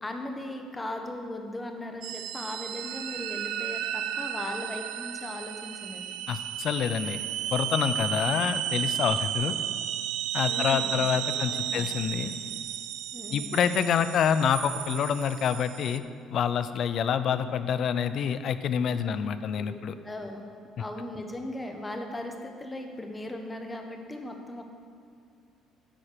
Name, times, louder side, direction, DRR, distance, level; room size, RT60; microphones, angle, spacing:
voice 1, 0.0-6.2 10.5-11.0 11.3-11.9 13.1-13.6 18.9-19.2 19.5-19.8 20.0-20.4 20.8-24.6, left 1 dB, 15° left, 4 dB, 1.1 m, -38 dB
sound 1, 2.0-16.0, right 10 dB, 80° right, 0.4 m, -33 dB
voice 2, 6.3-7.2 7.5-9.6 10.3-12.3 13.3-16.0 16.3-19.9, left 8 dB, 55° left, 12 dB, 0.5 m, -27 dB
11.0 x 4.3 x 6.7 m, 2.4 s
cardioid pair, 110°, 0 cm